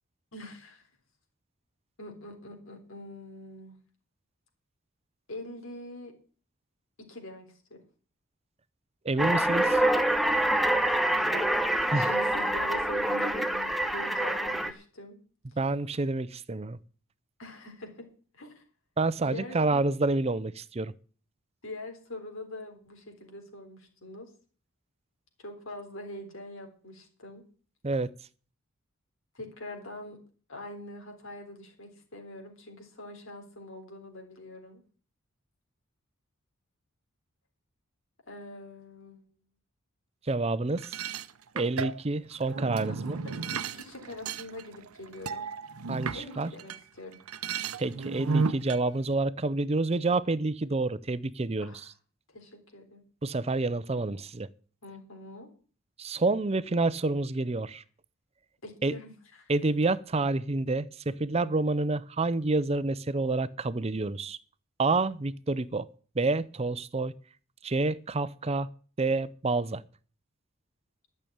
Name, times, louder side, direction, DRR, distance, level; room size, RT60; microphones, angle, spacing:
voice 1, 0.3-0.9 2.0-3.8 5.3-6.1 7.1-7.8 11.1-15.2 17.4-18.0 18.3-18.6 19.2-19.9 21.6-24.3 25.4-27.4 29.3-30.2 30.5-34.8 38.3-39.3 42.9-45.5 46.1-47.2 51.6-51.9 52.3-53.0 54.8-55.5 58.6-59.5, left 1 dB, 65° left, 3.7 m, -44 dB
voice 2, 9.0-9.8 11.9-12.1 15.6-16.8 19.0-20.9 27.8-28.1 40.3-41.0 41.5-43.2 45.9-46.5 47.8-51.7 53.2-54.5 56.0-57.8 58.8-58.9 59.5-64.4 64.8-65.9 66.2-67.1 67.6-68.7 69.0-69.8, right 3 dB, 30° right, 0.6 m, -28 dB
sound 1, 9.2-14.7, right 1 dB, ahead, 1.0 m, -26 dB
sound 2, 40.8-46.8 47.1-48.8, right 5 dB, 85° right, 0.7 m, -34 dB
12.5 x 6.8 x 8.7 m
head